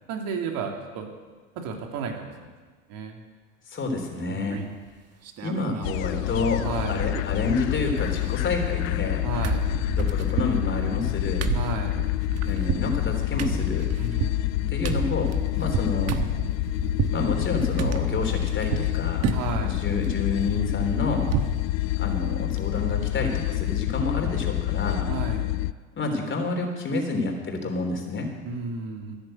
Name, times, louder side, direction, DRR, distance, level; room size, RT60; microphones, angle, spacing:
voice 1, 0.1-1.1 1.6-2.5 2.9-3.2 4.3-4.8 6.6-7.0 9.2-9.6 11.5-12.0 14.0-14.7 19.3-19.8 25.1-25.5 28.4-29.2, right 5 dB, 60° right, 2 dB, 2.8 m, -33 dB
voice 2, 3.7-4.6 5.4-6.6 6.9-9.3 10.0-11.5 12.4-13.9 14.7-16.1 17.1-19.3 19.6-21.3 22.0-25.1 26.0-28.3, left 3 dB, 30° left, 3 dB, 3.5 m, -29 dB
sound 1, 4.5-4.9 5.2-6.0 6.3-6.4 6.7-7.5 7.8-9.1 9.4-17.2 17.8-18.9 19.2-19.7 20.0-21.6 22.0-22.1 22.4-22.6, right 8 dB, 40° right, 1.2 m, -31 dB
sound 2, 5.8-25.7, left 17 dB, 80° left, 0.5 m, -27 dB
13.5 x 10.5 x 7.8 m, 1.4 s
hypercardioid pair, 90°, 40 cm